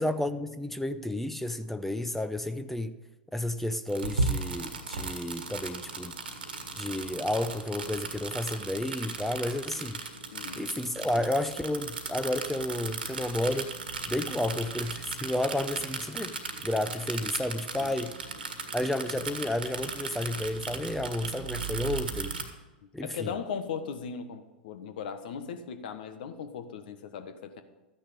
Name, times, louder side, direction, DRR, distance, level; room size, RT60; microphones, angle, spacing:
voice 1, 0.0-2.9 3.3-6.2 6.8-10.0 10.6-13.7 14.1-16.4 16.6-18.1 18.7-22.3 22.9-23.4, left 1 dB, 5° left, 12 dB, 0.6 m, -31 dB
sound 1, 3.9-22.4, right 4 dB, 90° right, 1.7 m, -36 dB
voice 2, 10.3-10.7 17.8-18.0 18.8-18.9 23.0-27.6, left 6 dB, 65° left, 9 dB, 1.3 m, -38 dB
13.5 x 10.0 x 5.1 m, 1.1 s
hypercardioid pair, 100°, 5 cm